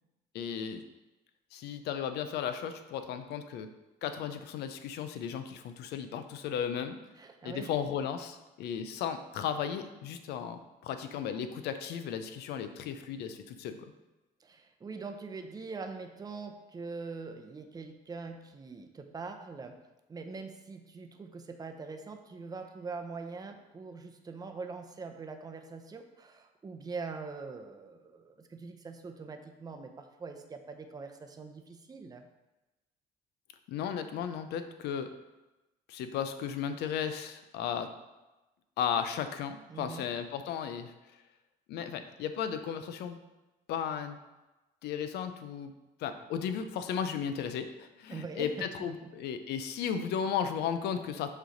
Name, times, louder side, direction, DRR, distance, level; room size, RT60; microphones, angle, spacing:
voice 1, 0.3-0.8 1.5-3.7 4.0-7.0 7.4-13.9 33.7-35.1 35.9-37.9 38.8-40.9 41.7-43.2 43.7-44.2 44.8-45.7 46.0-51.3, left 8 dB, 75° left, 9 dB, 0.6 m, -35 dB
voice 2, 7.2-7.7 14.4-19.8 20.1-32.3 39.7-40.1 48.1-48.7 49.0-49.1, right 4 dB, 20° right, 5 dB, 0.7 m, -43 dB
6.5 x 3.2 x 5.1 m, 1.1 s
cardioid pair, 110°, 17 cm